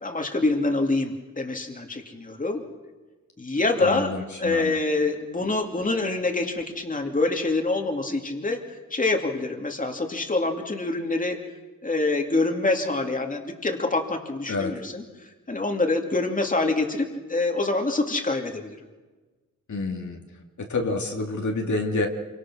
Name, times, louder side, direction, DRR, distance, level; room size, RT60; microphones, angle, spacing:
voice 1, 0.0-2.6 3.4-4.1 4.4-8.6 8.9-11.4 11.8-15.0 15.5-18.8, left 2 dB, 25° left, 3 dB, 2.5 m, -25 dB
voice 2, 3.8-4.8 14.5-14.8 19.7-20.2 20.6-22.1, left 2 dB, 70° left, 2 dB, 2.7 m, -28 dB
27.5 x 24.5 x 6.3 m, 1.3 s
wide cardioid pair, 130°, 31 cm